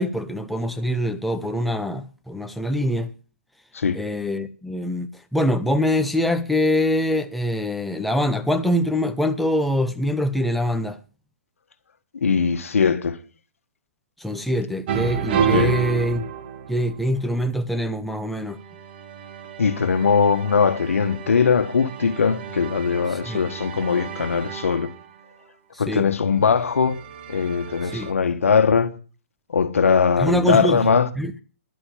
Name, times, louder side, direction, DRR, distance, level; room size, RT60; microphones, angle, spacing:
voice 1, 0.0-3.1 3.9-11.0 14.2-16.2 16.7-18.6 23.3-23.4 25.7-26.1 27.9-28.1 30.2-31.3, equal, ahead, 0.6 m, -24 dB
voice 2, 12.1-13.2 15.5-15.8 19.6-24.9 25.8-27.0 27.3-28.9 29.5-31.1, left 6 dB, 80° left, 1.6 m, -20 dB
sound 1, 14.9-17.3 18.5-25.1 26.2-28.1, right 7 dB, 45° right, 1.7 m, -31 dB
11.0 x 7.1 x 8.7 m
hypercardioid pair, 150°, 7 cm